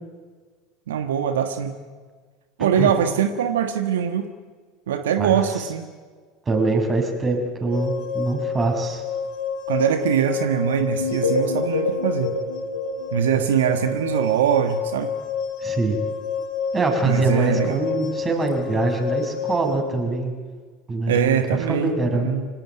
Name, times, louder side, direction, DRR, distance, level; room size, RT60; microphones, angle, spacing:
voice 1, 0.9-1.7 2.6-4.3 4.9-5.9 9.7-12.3 13.1-15.1 17.0-17.8 21.1-22.5, right 8 dB, 70° right, 8 dB, 1.4 m, -22 dB
voice 2, 2.6-2.9 5.2-5.4 6.5-9.0 15.6-16.0 16.7-20.3 20.9-21.4 21.7-22.3, right 3 dB, 25° right, 3 dB, 6.2 m, -23 dB
sound 1, 7.7-19.8, left 6 dB, 55° left, 5.8 m, -29 dB
sound 2, 11.0-13.9, left 3 dB, 90° left, 2.4 m, -27 dB
25.0 x 18.0 x 9.3 m, 1.5 s
figure-of-eight pair, 75°, 0 cm